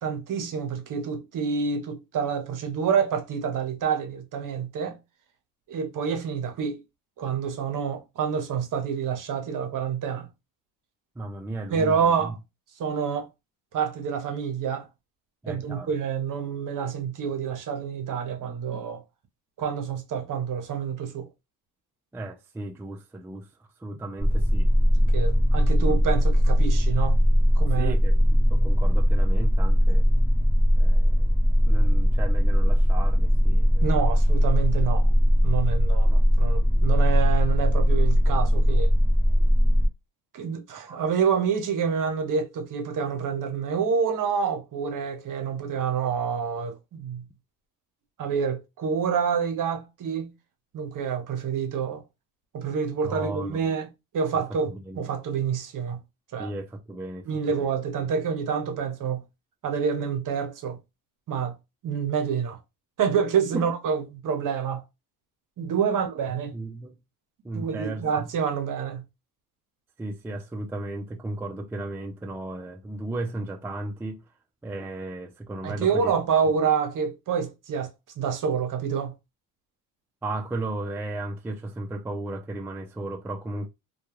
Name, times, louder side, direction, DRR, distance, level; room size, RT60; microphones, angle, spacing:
voice 1, 0.0-5.0 5.7-6.8 7.2-10.3 11.7-12.3 12.8-13.3 13.7-14.9 15.5-19.0 19.6-21.3 25.1-27.2 27.6-27.9 33.8-35.1 35.4-38.9 40.3-47.2 48.2-50.3 50.7-52.0 52.5-53.9 54.1-56.0 56.3-56.5 57.3-59.2 59.6-60.8 61.3-61.6 61.8-62.6 63.0-64.8 65.6-66.5 67.5-69.0 75.6-79.1, right 6 dB, 50° right, 0.8 m, -27 dB
voice 2, 11.2-12.3 15.4-15.9 22.1-23.5 23.8-24.7 25.8-26.0 27.8-30.0 30.8-31.4 31.7-33.8 40.9-41.0 53.0-53.6 54.7-55.0 56.4-57.3 57.6-57.7 63.5-63.6 65.9-66.0 66.5-67.0 67.4-68.3 70.0-74.2 74.6-76.1 80.2-83.7, right 2 dB, 5° right, 0.3 m, -35 dB
sound 1, 24.2-39.9, equal, 10° left, 1.0 m, -20 dB
2.2 x 2.2 x 2.9 m
supercardioid pair, 85°, 41 cm